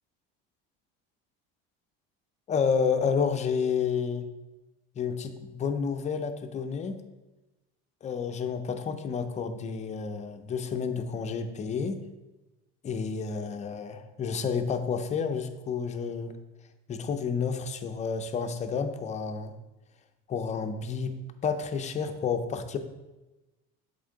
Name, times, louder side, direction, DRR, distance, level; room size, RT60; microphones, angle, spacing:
voice 1, 2.5-4.2 5.0-7.0 8.0-12.0 12.8-16.3 16.9-19.5 20.3-21.1 21.4-22.8, left 6 dB, 25° left, 7 dB, 0.4 m, -30 dB
7.7 x 3.6 x 3.7 m, 1.1 s
cardioid pair, 135°, 30 cm